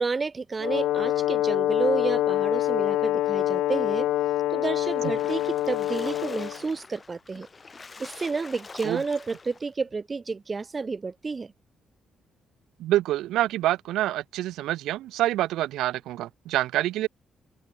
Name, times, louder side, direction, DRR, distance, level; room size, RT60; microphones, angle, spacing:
voice 1, 0.0-4.1 4.5-7.5 8.0-11.5, right 4 dB, 30° right, 0.6 m, -30 dB
Brass instrument, 0.6-6.6, left 14 dB, 85° left, 0.3 m, -25 dB
Splash splatter, 4.8-9.7, left 4 dB, 30° left, 3.5 m, -45 dB
voice 2, 12.8-17.1, right 14 dB, 85° right, 0.8 m, -26 dB
cardioid pair, 90°, 0 cm